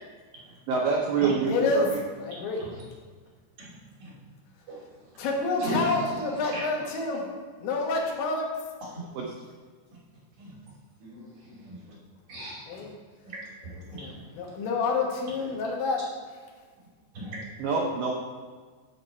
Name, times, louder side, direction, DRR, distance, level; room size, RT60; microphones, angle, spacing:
voice 1, 0.7-2.0 9.2-9.3 17.6-18.1, right 5 dB, 75° right, -2 dB, 2.1 m, -26 dB
voice 2, 1.5-1.9 2.2-2.6 5.2-7.3 7.6-8.5 12.7-12.9 13.9-16.1, left 3 dB, 90° left, -1 dB, 3.9 m, -28 dB
voice 3, 2.4-2.8 3.6-3.7 4.0-4.1 4.7-4.8 5.6-6.2 6.5-6.9 8.9-9.0 10.4-10.6 11.0-11.9 12.3-12.6 13.3-13.4 13.7-14.2 15.4-15.6 17.1-17.4, equal, 45° right, -7 dB, 3.8 m, -37 dB
11.0 x 7.8 x 4.3 m, 1.5 s
omnidirectional pair, 5.1 m